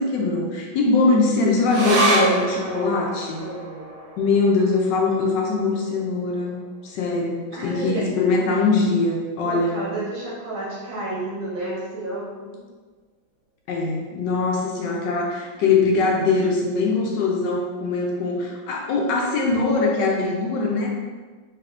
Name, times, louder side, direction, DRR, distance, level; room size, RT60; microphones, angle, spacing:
voice 1, 0.0-3.5 4.2-9.8 13.7-20.9, left 3 dB, 75° left, -1 dB, 1.1 m, -22 dB
sound 1, 1.7-8.5 8.8-8.9 9.2-9.9 10.4-10.5, right 2 dB, 55° right, 0.8 m, -28 dB
voice 2, 2.5-3.0 3.4-3.9 7.5-8.0 9.4-12.6, right 2 dB, 90° right, -5 dB, 1.8 m, -31 dB
3.4 x 3.4 x 2.4 m, 1.4 s
omnidirectional pair, 2.1 m